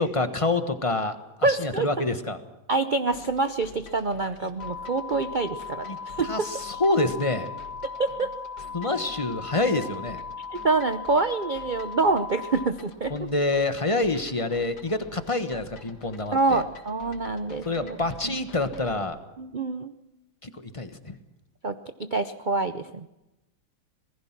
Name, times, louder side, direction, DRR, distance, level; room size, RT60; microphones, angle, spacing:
voice 1, 0.0-2.4 4.2-4.3 5.9-6.0 6.3-7.5 8.7-10.2 13.1-16.6 17.6-19.2 20.4-21.2, left 2 dB, 20° left, 9 dB, 1.2 m, -27 dB
voice 2, 1.4-1.9 2.7-6.5 8.0-8.3 10.5-13.1 16.3-18.0 18.2-18.4 19.4-19.9 21.6-23.1, right 3 dB, 70° right, 10 dB, 0.4 m, -26 dB
sound 1, 3.1-19.0, left 3 dB, 55° left, 2.3 m, -49 dB
sound 2, 4.6-12.7, left 5 dB, 75° left, 0.3 m, -38 dB
26.5 x 19.5 x 6.0 m, 0.96 s
omnidirectional pair, 2.1 m